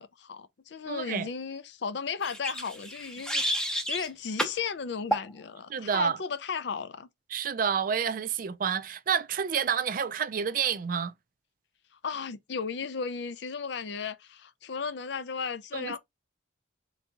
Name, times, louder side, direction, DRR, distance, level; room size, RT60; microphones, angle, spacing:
voice 1, 0.0-3.4 3.9-7.1 12.0-16.0, left 5 dB, 60° left, 0.4 m, -35 dB
voice 2, 0.9-1.3 5.7-6.2 7.3-11.1 15.7-16.0, right 7 dB, 45° right, 0.3 m, -29 dB
sound 1, 2.2-4.1 4.4-4.6 5.1-5.3, equal, 5° left, 0.7 m, -30 dB
3.9 x 2.7 x 3.5 m
head